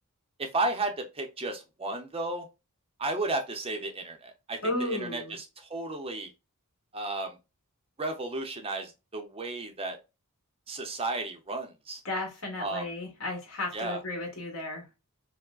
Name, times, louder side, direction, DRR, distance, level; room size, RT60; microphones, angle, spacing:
voice 1, 0.4-2.5 3.0-6.3 6.9-7.4 8.0-10.0 10.7-12.0 12.6-12.9 13.7-14.0, right 2 dB, 25° right, 0.6 m, -33 dB
voice 2, 4.6-5.4 12.0-14.8, left 2 dB, 65° left, 1.6 m, -34 dB
4.5 x 2.1 x 2.3 m
head